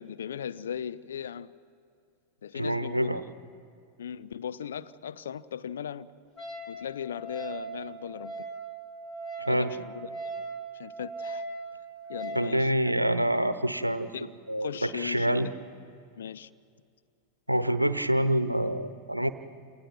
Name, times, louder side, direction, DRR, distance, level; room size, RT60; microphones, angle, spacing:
voice 1, 0.0-1.5 2.4-3.1 4.0-6.1 6.7-8.5 9.5-10.1 10.7-11.4 12.1-13.0 14.1-14.3 14.6-15.4 16.2-16.5, left 8 dB, 65° left, 0.6 m, -38 dB
voice 2, 2.5-3.2 9.4-9.8 12.3-14.1 14.5-15.5 17.5-19.3, right 1 dB, 85° right, 0.9 m, -26 dB
Wind instrument woodwind instrument, 6.4-12.5, right 3 dB, 25° left, 4.9 m, -39 dB
28.5 x 28.5 x 4.7 m
figure-of-eight pair, 90°, 0 cm